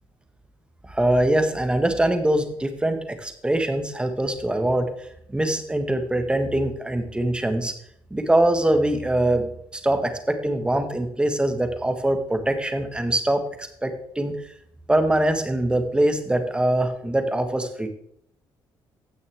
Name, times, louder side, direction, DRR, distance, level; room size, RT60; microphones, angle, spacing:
voice 1, 0.9-7.7 8.1-14.3 14.9-17.9, right 1 dB, 10° right, 7 dB, 1.5 m, -23 dB
16.0 x 6.2 x 3.6 m, 0.70 s
cardioid pair, 90°, 9 cm